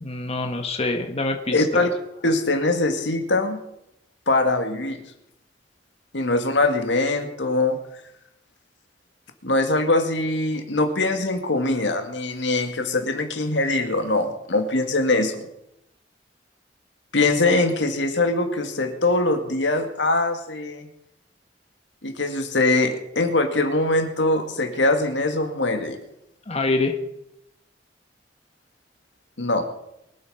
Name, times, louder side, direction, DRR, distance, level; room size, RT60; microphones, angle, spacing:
voice 1, 0.0-1.9 26.5-26.9, left 2 dB, 35° left, 4 dB, 1.4 m, -25 dB
voice 2, 1.5-1.9 2.2-3.6 4.3-5.0 6.1-7.8 9.4-15.5 17.1-20.9 22.0-26.0 29.4-29.6, left 2 dB, 80° left, 6 dB, 2.0 m, -22 dB
23.0 x 8.3 x 5.6 m, 0.81 s
head